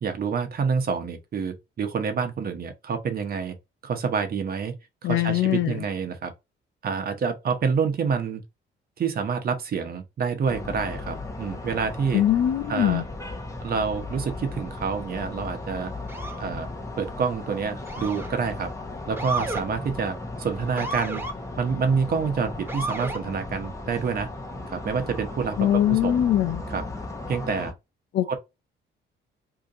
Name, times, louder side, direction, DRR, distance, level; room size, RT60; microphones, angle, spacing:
voice 1, 0.0-3.5 3.8-4.7 5.0-6.3 6.8-8.4 9.0-12.2 12.7-13.0 13.6-15.9 16.4-16.7 17.0-18.7 19.1-21.2 21.6-24.3 24.7-26.2 26.7-26.8 27.3-27.7 28.3-28.4, right 5 dB, 50° right, 0.9 m, -27 dB
voice 2, 5.0-5.8 12.1-13.0 25.6-26.6 28.1-28.3, left 12 dB, 65° left, 0.6 m, -22 dB
sound 1, 10.5-27.7, left 2 dB, 15° left, 0.9 m, -36 dB
Motor vehicle (road) / Siren, 16.1-16.5 17.9-18.4 19.2-19.6 20.8-21.3 22.7-23.2, right 2 dB, 10° right, 0.8 m, -32 dB
2.9 x 2.6 x 3.7 m
cardioid pair, 90°, 20 cm